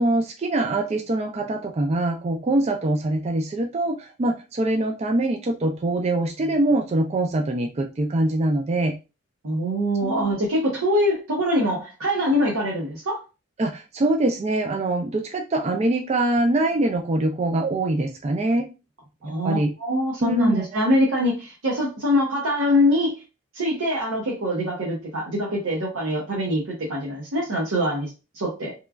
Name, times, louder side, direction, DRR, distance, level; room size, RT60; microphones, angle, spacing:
voice 1, 0.0-8.9 10.0-10.3 13.6-18.7 19.2-19.7 20.2-20.6, right 2 dB, 30° right, 0.3 m, -23 dB
voice 2, 9.4-13.2 19.2-23.2 23.5-28.7, equal, 90° right, 0.7 m, -24 dB
3.0 x 2.3 x 2.2 m
head